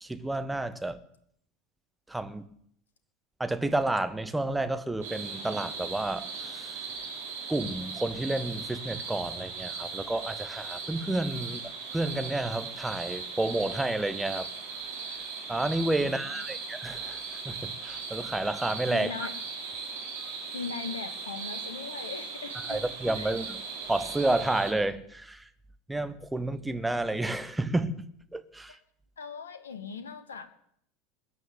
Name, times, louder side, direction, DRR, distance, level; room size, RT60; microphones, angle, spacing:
voice 1, 0.0-1.0 2.1-2.5 3.4-6.7 7.5-14.5 15.5-19.3 22.7-23.6 23.9-25.5 25.9-28.0 28.3-28.8, right 2 dB, 5° right, 1.3 m, -30 dB
sound 1, 5.0-24.7, right 5 dB, 60° right, 4.7 m, -38 dB
voice 2, 16.0-16.5 18.9-19.3 20.5-22.8 23.1-23.3 28.7-28.8 29.2-30.5, left 5 dB, 75° left, 1.3 m, -39 dB
21.0 x 7.9 x 8.3 m
figure-of-eight pair, 75°, 0 cm